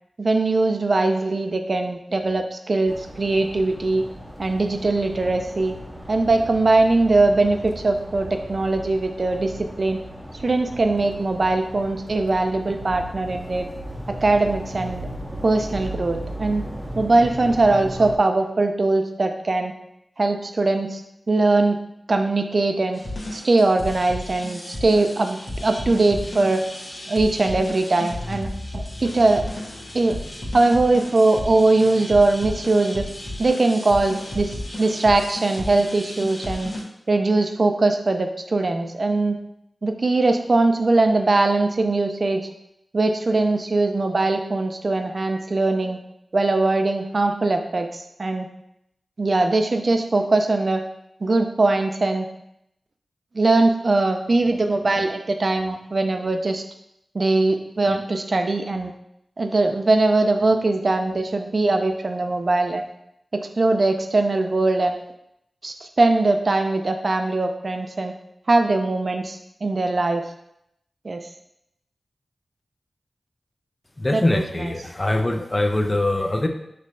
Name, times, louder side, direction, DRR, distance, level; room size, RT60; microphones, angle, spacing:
voice 1, 0.2-4.0 4.4-5.7 6.1-10.0 10.3-13.7 14.1-15.1 15.4-16.7 17.0-19.7 20.2-21.0 21.3-21.8 22.1-23.0 23.3-26.6 27.1-29.5 29.9-30.2 30.5-33.1 33.4-36.7 37.1-39.4 39.8-42.5 42.9-46.0 46.3-48.5 49.2-50.8 51.2-52.3 53.3-56.6 57.1-58.9 59.4-62.9 63.3-65.1 65.6-68.1 68.5-70.3 71.0-71.3 74.1-74.7, right 2 dB, 55° right, 6 dB, 0.5 m, -21 dB
sound 1, 2.9-18.2, equal, 15° right, 0.7 m, -36 dB
sound 2, 22.9-36.8, left 1 dB, 70° left, 1.1 m, -33 dB
voice 2, 74.0-76.5, left 1 dB, 30° left, 4 dB, 0.5 m, -22 dB
6.4 x 3.1 x 2.6 m, 0.80 s
wide cardioid pair, 75°, 0 cm